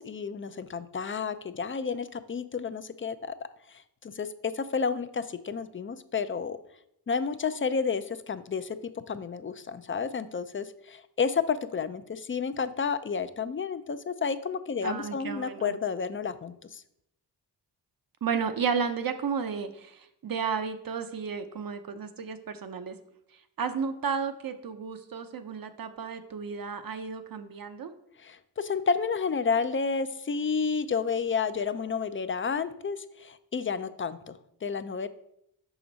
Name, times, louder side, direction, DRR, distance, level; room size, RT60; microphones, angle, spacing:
voice 1, 0.0-3.3 3.7-6.6 7.1-8.8 9.1-16.8 28.2-35.1, left 5 dB, 30° left, 12 dB, 0.4 m, -31 dB
voice 2, 14.8-15.7 18.2-22.9 23.6-27.9, right 6 dB, 55° right, 9 dB, 0.7 m, -33 dB
5.9 x 5.0 x 4.0 m, 0.77 s
cardioid pair, 55°, 42 cm